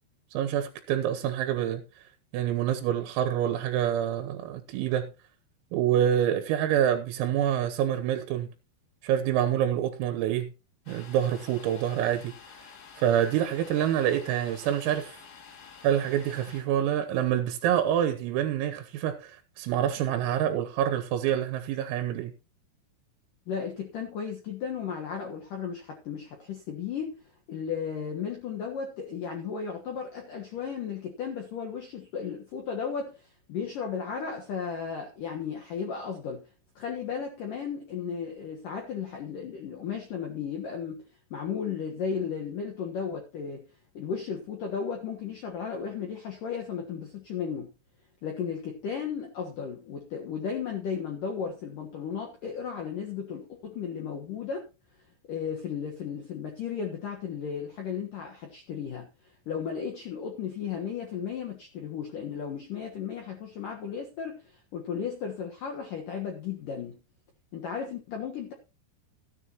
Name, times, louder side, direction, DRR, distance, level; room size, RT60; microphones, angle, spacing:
voice 1, 0.4-1.8 2.3-5.1 5.7-8.5 9.0-10.5 10.9-12.3 13.0-15.2 15.8-22.3, right 10 dB, 85° right, 3.8 m, -27 dB
Domestic sounds home sounds, 10.9-16.6, left 6 dB, 50° left, 3.2 m, -49 dB
voice 2, 23.5-27.2 27.5-36.5 36.8-41.1 41.3-43.7 43.9-47.7 48.2-54.7 55.3-59.1 59.5-67.0 67.5-68.5, left 7 dB, 70° left, 2.0 m, -35 dB
15.5 x 10.0 x 3.0 m
omnidirectional pair, 5.9 m